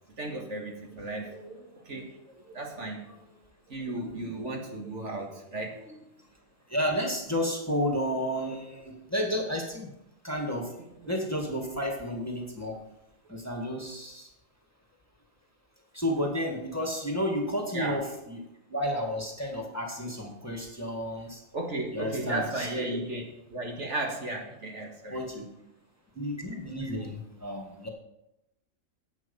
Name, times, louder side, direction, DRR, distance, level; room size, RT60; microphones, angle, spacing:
voice 1, 0.2-3.3 3.7-6.1 8.5-8.6 11.0-11.1 17.7-18.0 21.5-25.2 27.5-27.6, right 2 dB, 60° right, 1 dB, 2.0 m, -35 dB
voice 2, 6.7-9.9 10.2-10.7 11.1-12.8 13.3-14.3 15.9-18.4 18.7-21.4 21.9-22.9 25.1-25.5 26.2-27.9, equal, 10° left, 0 dB, 1.8 m, -31 dB
11.0 x 8.2 x 5.4 m, 0.86 s
omnidirectional pair, 1.4 m